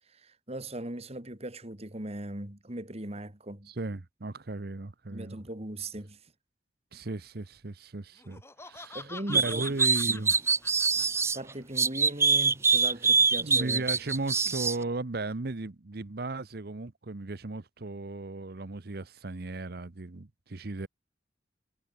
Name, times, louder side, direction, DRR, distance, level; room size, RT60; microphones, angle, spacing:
voice 1, 0.1-3.7 5.1-6.2 8.9-9.6 10.1-10.2 11.3-13.8, right 1 dB, 35° right, 2.9 m, -39 dB
voice 2, 3.7-5.4 6.9-10.3 13.4-20.9, right 2 dB, 60° right, 0.9 m, -36 dB
Laughter, 8.2-11.4, left 3 dB, 15° left, 4.4 m, -46 dB
sound 1, 9.3-11.4 11.8-14.8, right 4 dB, 15° right, 0.4 m, -24 dB
head